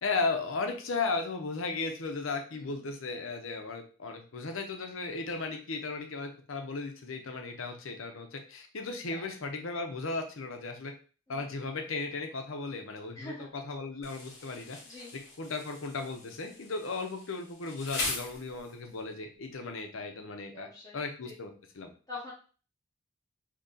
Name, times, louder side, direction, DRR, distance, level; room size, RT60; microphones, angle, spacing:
voice 1, 0.0-10.9 11.3-14.8 15.4-20.7 20.9-21.5 21.7-21.9, left 3 dB, 70° left, 4 dB, 0.7 m, -36 dB
voice 2, 13.1-13.5 14.8-15.1 20.5-21.4 22.1-22.3, left 2 dB, 20° left, -7 dB, 0.9 m, -45 dB
Insect, 14.0-19.0, left 3 dB, 55° left, 1.2 m, -40 dB
2.9 x 2.8 x 3.7 m, 0.38 s
head